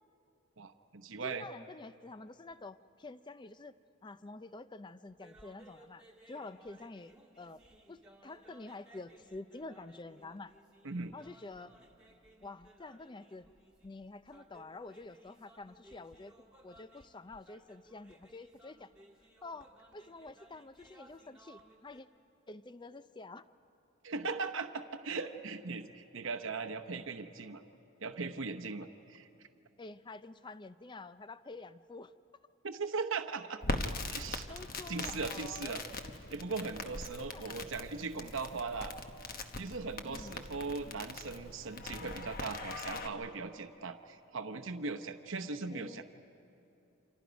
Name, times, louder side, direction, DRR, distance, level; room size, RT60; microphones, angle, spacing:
voice 1, 0.6-1.5 10.8-11.1 24.0-27.6 28.0-29.3 32.6-33.8 34.1-34.5 34.9-35.8 36.3-38.9 39.6-46.0, right 4 dB, 65° right, 6 dB, 0.9 m, -39 dB
voice 2, 1.2-3.8 4.0-7.6 7.9-10.5 11.1-11.8 12.4-13.5 13.8-16.3 16.6-18.9 19.4-22.1 22.5-23.5 29.8-32.1 34.5-35.8 37.1-37.6 40.0-40.5 45.7-46.0, left 3 dB, 20° left, 13 dB, 0.5 m, -48 dB
sound 1, 5.1-22.0, right 1 dB, 5° right, 1.7 m, -61 dB
Crackle, 33.6-43.1, left 2 dB, 40° left, 1.1 m, -41 dB
29.5 x 26.5 x 5.2 m, 2.9 s
head